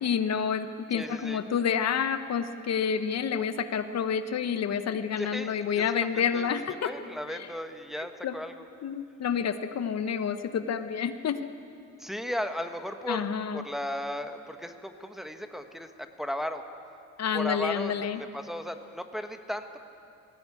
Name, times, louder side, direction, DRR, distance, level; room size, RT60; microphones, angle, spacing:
voice 1, 0.0-6.9 7.4-7.5 8.0-8.4 8.8-11.4 13.1-13.6 17.2-18.2, left 7 dB, 60° left, 10 dB, 0.9 m, -29 dB
voice 2, 0.9-1.4 5.2-6.1 6.3-8.7 12.0-16.6 17.3-19.8, equal, ahead, 6 dB, 1.3 m, -36 dB
20.0 x 17.0 x 8.4 m, 2.5 s
cardioid pair, 90°, 30 cm